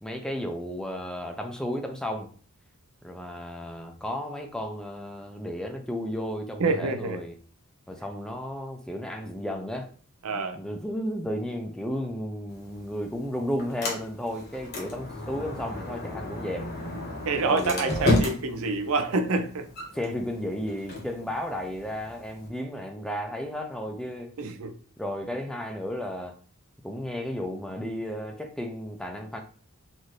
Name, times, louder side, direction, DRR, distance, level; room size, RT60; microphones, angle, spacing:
voice 1, 0.0-2.3 3.0-7.4 7.9-9.9 10.6-16.7 17.4-18.2 19.9-24.3 25.0-26.3 26.8-29.4, equal, 5° left, 0.4 m, -33 dB
voice 2, 6.6-7.2 10.2-10.6 17.2-19.7 24.4-24.7, right 3 dB, 65° right, 0.5 m, -27 dB
Sliding door, 12.5-22.5, left 1 dB, 50° left, 1.1 m, -33 dB
4.1 x 2.5 x 3.1 m
head